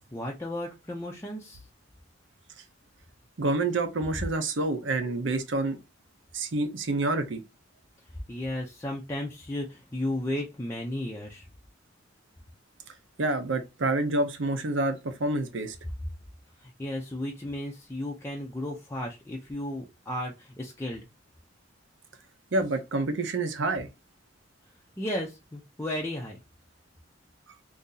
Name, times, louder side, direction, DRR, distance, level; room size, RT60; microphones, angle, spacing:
voice 1, 0.1-1.7 8.3-11.5 16.6-21.1 25.0-26.4, left 1 dB, 15° left, 0.5 m, -34 dB
voice 2, 3.4-5.8 6.3-7.4 13.2-15.7 22.5-23.9, right 2 dB, 70° right, 0.7 m, -28 dB
2.7 x 2.6 x 3.8 m
head